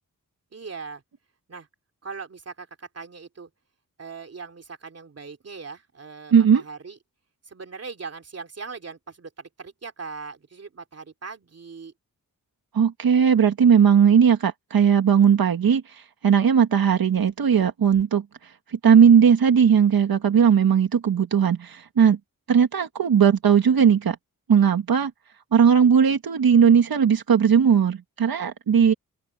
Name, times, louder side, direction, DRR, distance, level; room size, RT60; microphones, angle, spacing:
voice 1, 0.5-1.0 1.5-1.7 2.0-3.5 4.0-7.0 7.5-11.9, right 5 dB, 45° right, 3.0 m, -39 dB
voice 2, 6.3-6.6 12.7-15.8 16.2-18.2 18.7-22.2 22.5-24.2 24.5-25.1 25.5-28.9, right 7 dB, 85° right, 1.6 m, -18 dB
open air
wide cardioid pair, 165°, 35 cm